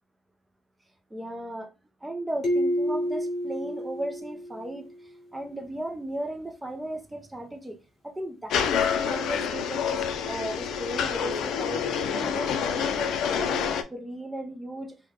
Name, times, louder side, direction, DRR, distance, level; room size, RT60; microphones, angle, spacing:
voice 1, 1.1-1.7 2.0-15.1, right 1 dB, 10° right, 0.5 m, -36 dB
sound 1, 2.4-5.0, equal, 35° left, 1.2 m, -29 dB
sound 2, 8.5-13.8, left 7 dB, 65° left, 0.4 m, -27 dB
3.5 x 2.2 x 3.4 m
cardioid pair, 170°, 0 cm